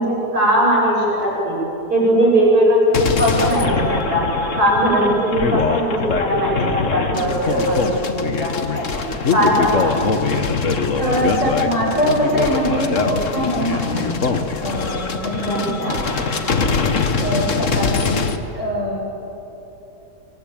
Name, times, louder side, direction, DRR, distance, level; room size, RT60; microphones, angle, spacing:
voice 1, 0.0-1.5 1.9-4.2 4.6-8.8 9.3-10.0 15.4-15.9, equal, 65° right, -4 dB, 8.2 m, -19 dB
sound 1, 2.9-18.4, left 4 dB, 50° left, 1.7 m, -22 dB
voice 2, 11.0-14.1 14.6-16.6 17.2-19.0, equal, 45° right, -3 dB, 7.7 m, -23 dB
26.0 x 23.5 x 9.1 m, 3.0 s
omnidirectional pair, 1.8 m